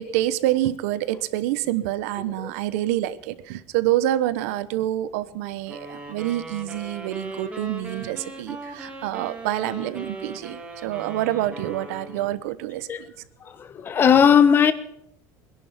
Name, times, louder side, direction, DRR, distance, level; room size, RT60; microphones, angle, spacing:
voice 1, 0.0-12.9, right 14 dB, 90° right, 1.0 m, -27 dB
sound 1, 5.7-12.5, right 2 dB, 15° right, 2.4 m, -38 dB
voice 2, 13.4-14.7, left 7 dB, 25° left, 1.1 m, -17 dB
21.5 x 11.0 x 5.8 m
cardioid pair, 150°, 8 cm